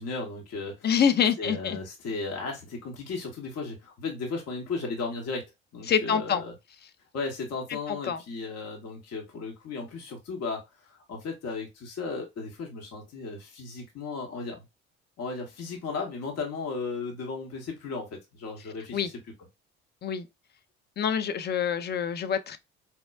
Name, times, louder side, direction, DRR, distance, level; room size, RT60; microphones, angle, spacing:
voice 1, 0.0-0.9 1.4-5.4 5.7-6.5 7.1-14.6 15.2-19.2, left 4 dB, 45° left, 1.0 m, -35 dB
voice 2, 0.8-1.8 5.9-6.4 7.9-8.2 18.9-19.1 20.0-20.3 21.0-22.6, left 7 dB, 30° left, 0.5 m, -26 dB
4.4 x 2.1 x 2.2 m
hypercardioid pair, 55°, 35 cm